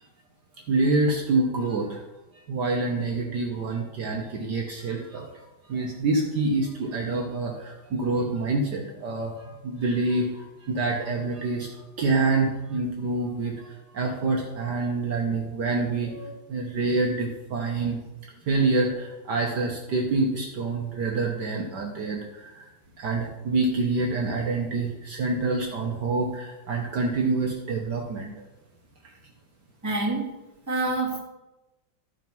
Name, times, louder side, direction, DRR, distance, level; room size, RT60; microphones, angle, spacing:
voice 1, 0.7-2.0 2.5-18.0 18.5-22.7 23.0-28.3, right 3 dB, 60° right, 0 dB, 1.6 m, -27 dB
voice 2, 29.8-30.3 30.7-31.2, right 2 dB, 10° right, -3 dB, 2.0 m, -26 dB
13.0 x 4.6 x 5.4 m, 1.0 s
omnidirectional pair, 2.2 m